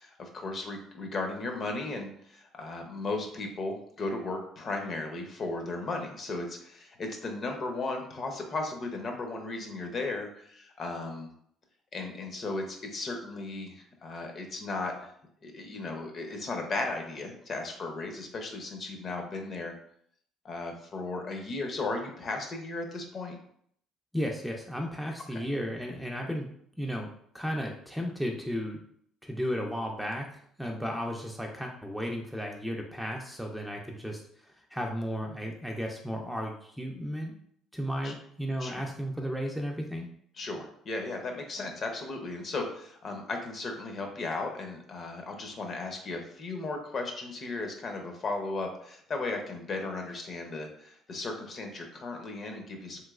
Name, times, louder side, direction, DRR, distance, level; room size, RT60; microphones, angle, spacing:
voice 1, 0.0-11.3 11.9-15.1 15.4-19.7 20.4-23.4 25.3-25.4 38.0-38.1 38.6-38.8 40.4-53.0, left 3 dB, 40° left, 3 dB, 0.6 m, -36 dB
voice 2, 24.1-26.5 26.8-27.1 27.3-28.8 29.2-30.3 30.6-37.3 37.7-40.1, equal, ahead, 1 dB, 0.4 m, -34 dB
3.1 x 2.9 x 2.4 m, 0.66 s
cardioid pair, 100°, 0 cm